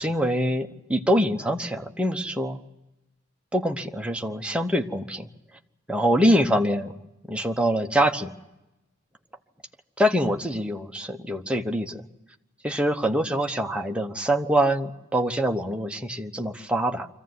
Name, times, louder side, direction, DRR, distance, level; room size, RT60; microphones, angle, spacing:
voice 1, 0.0-2.6 3.5-5.3 5.9-6.9 7.3-8.3 10.0-12.1 12.6-17.1, equal, 5° right, 4 dB, 1.0 m, -24 dB
24.5 x 15.0 x 9.5 m, 0.95 s
head